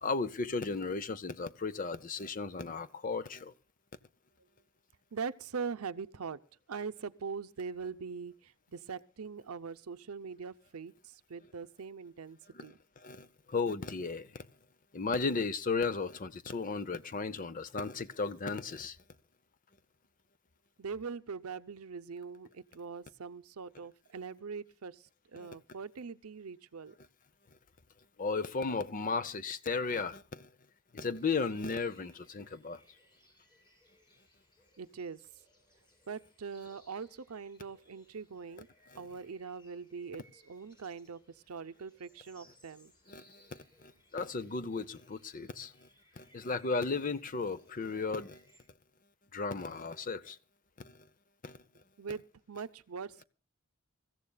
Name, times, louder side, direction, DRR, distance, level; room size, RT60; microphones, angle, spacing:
voice 1, 0.0-3.5 12.5-14.4 14.9-19.0 25.4-25.5 28.2-30.5 30.9-32.8 38.9-39.0 43.1-45.9 46.2-48.4 49.3-50.4 50.8-51.0 51.4-51.6, left 4 dB, 40° left, 0.7 m, -35 dB
voice 2, 5.1-6.4 6.7-12.7 20.8-25.0 25.3-26.9 34.8-35.2 36.1-38.7 39.0-41.2 41.5-42.9 52.0-53.2, right 5 dB, 85° right, 0.7 m, -42 dB
sound 1, 31.1-48.6, left 1 dB, 20° left, 4.5 m, -66 dB
27.5 x 15.0 x 2.3 m
head